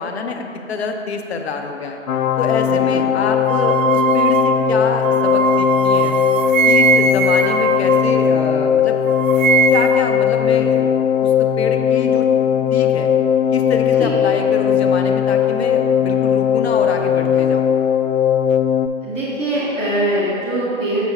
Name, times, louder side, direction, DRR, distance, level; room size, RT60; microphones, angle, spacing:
voice 1, 0.0-2.0 2.4-6.1 6.7-9.0 9.7-10.9 11.2-12.3 12.7-13.1 13.5-17.7, left 4 dB, 55° left, 4 dB, 0.8 m, -26 dB
sound 1, 2.1-18.9, left 9 dB, 85° left, 0.5 m, -18 dB
voice 2, 2.6-3.0 14.0-14.1 19.0-21.0, right 1 dB, 5° left, -13 dB, 0.6 m, -22 dB
sound 2, 3.5-8.7 9.1-10.1, right 6 dB, 80° right, 0.5 m, -20 dB
6.7 x 6.0 x 3.4 m, 2.6 s
hypercardioid pair, 145°, 39 cm